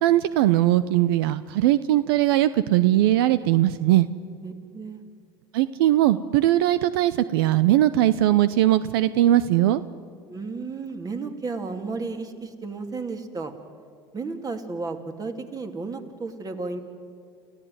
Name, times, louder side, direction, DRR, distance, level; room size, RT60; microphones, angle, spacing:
voice 1, 0.0-4.1 5.5-9.8, right 14 dB, 80° right, 15 dB, 0.6 m, -20 dB
voice 2, 4.4-5.0 10.3-13.5 14.1-16.8, right 4 dB, 30° right, 6 dB, 2.7 m, -33 dB
29.0 x 15.0 x 9.4 m, 2.2 s
hypercardioid pair, 80°, 12 cm